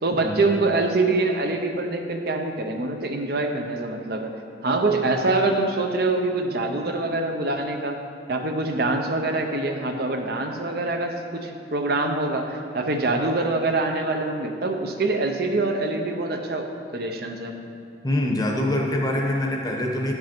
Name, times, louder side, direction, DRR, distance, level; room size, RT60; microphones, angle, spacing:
voice 1, 0.0-4.3 4.6-8.0 8.3-16.7 16.9-17.6, right 2 dB, 60° right, 4 dB, 0.6 m, -25 dB
voice 2, 18.0-20.1, left 1 dB, 20° left, 0 dB, 0.8 m, -24 dB
10.5 x 5.4 x 4.4 m, 2.5 s
head